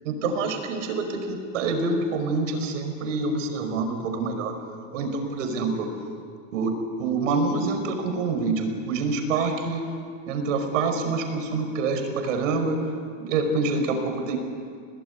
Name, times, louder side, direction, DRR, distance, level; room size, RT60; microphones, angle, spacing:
voice 1, 0.0-4.6 4.9-5.9 6.5-9.9 10.3-12.8 13.2-14.4, right 3 dB, 80° right, 6 dB, 5.3 m, -26 dB
27.0 x 19.0 x 9.6 m, 2.2 s
supercardioid pair, 155°, 38 cm